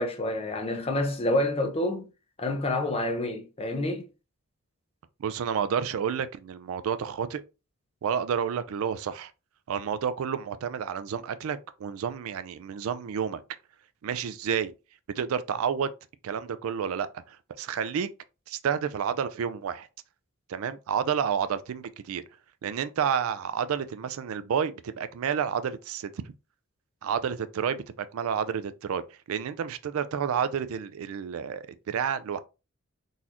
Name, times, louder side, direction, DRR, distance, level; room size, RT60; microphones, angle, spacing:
voice 1, 0.0-2.1 2.4-4.1, left 1 dB, 25° left, 0.6 m, -28 dB
voice 2, 5.2-7.4 8.0-9.3 9.7-13.4 14.0-14.7 15.2-15.9 16.2-18.1 18.5-19.9 20.5-22.2 22.6-26.1 27.0-29.0 29.3-32.4, right 7 dB, 75° right, 0.3 m, -30 dB
3.9 x 2.5 x 2.9 m
head